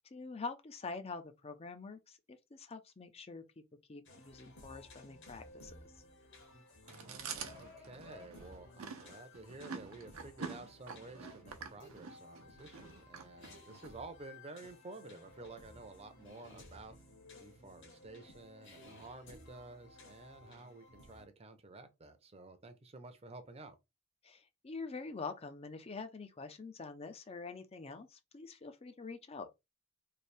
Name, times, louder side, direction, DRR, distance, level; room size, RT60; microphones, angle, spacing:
voice 1, 0.1-3.4 3.9-5.7 24.2-29.5, left 4 dB, 30° left, 0.5 m, -45 dB
sound 1, 4.1-21.3, left 2 dB, 55° left, 1.2 m, -56 dB
voice 2, 6.8-17.0 17.4-23.8, right 2 dB, 30° right, 0.7 m, -52 dB
Chewing mastication, 6.9-13.9, right 5 dB, 80° right, 0.7 m, -47 dB
3.3 x 2.2 x 4.3 m
head